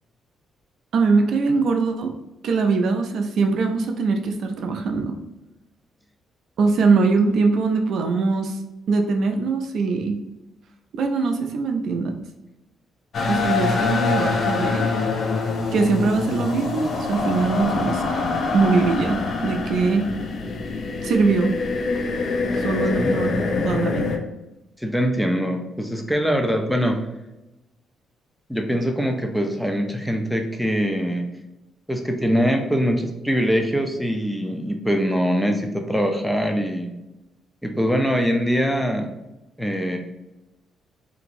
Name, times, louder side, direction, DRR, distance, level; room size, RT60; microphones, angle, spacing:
voice 1, 0.9-2.1 2.4-5.2 6.6-8.6 8.9-10.2 10.9-12.1 13.3-14.8 15.7-18.2 18.5-20.1 21.0-21.5 22.5-24.1, right 4 dB, 70° right, 4 dB, 0.4 m, -22 dB
sound 1, 13.1-24.2, left 4 dB, 55° left, 0.5 m, -25 dB
voice 2, 24.8-27.0 28.5-31.3 31.9-36.9 37.6-39.1 39.6-40.0, equal, ahead, 3 dB, 0.5 m, -23 dB
2.9 x 2.6 x 2.5 m, 0.97 s
cardioid pair, 90°, 0 cm